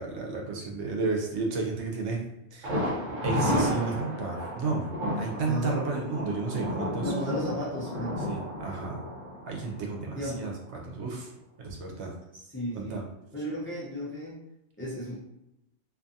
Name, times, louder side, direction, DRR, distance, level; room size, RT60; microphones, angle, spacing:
voice 1, 0.0-2.2 2.5-2.9 3.2-4.9 5.2-7.1 8.3-9.0 9.5-11.3 11.6-12.1 12.7-13.0, right 4 dB, 80° right, 0 dB, 0.9 m, -32 dB
Thunder, 2.6-10.4 10.7-10.8 11.2-11.3, equal, 50° right, 1.0 m, -32 dB
voice 2, 5.4-5.8 7.0-8.3 10.1-10.4 12.3-13.0 13.3-14.4 14.8-15.2, left 1 dB, 15° left, -7 dB, 0.5 m, -34 dB
2.6 x 2.4 x 2.6 m, 0.86 s
omnidirectional pair, 1.2 m